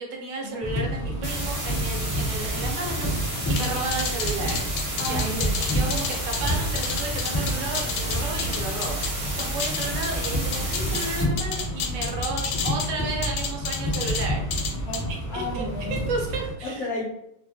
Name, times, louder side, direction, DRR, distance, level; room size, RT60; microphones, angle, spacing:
voice 1, 0.0-4.7 5.0-14.4 14.7-14.9 15.3-15.6 15.9-16.9, right 3 dB, 75° right, 0 dB, 1.2 m, -33 dB
sound 1, 0.6-16.5, equal, 15° left, 1.4 m, -29 dB
sound 2, 1.2-11.2, right 1 dB, 55° right, 0.3 m, -33 dB
sound 3, 3.6-9.1 9.4-11.1 11.4-12.9 13.2-14.2 14.5-15.0, left 6 dB, 90° left, 1.3 m, -30 dB
voice 2, 5.0-5.5 14.8-16.0 16.6-17.0, left 1 dB, 65° left, -2 dB, 1.0 m, -33 dB
2.7 x 2.5 x 2.6 m, 0.80 s
omnidirectional pair, 2.0 m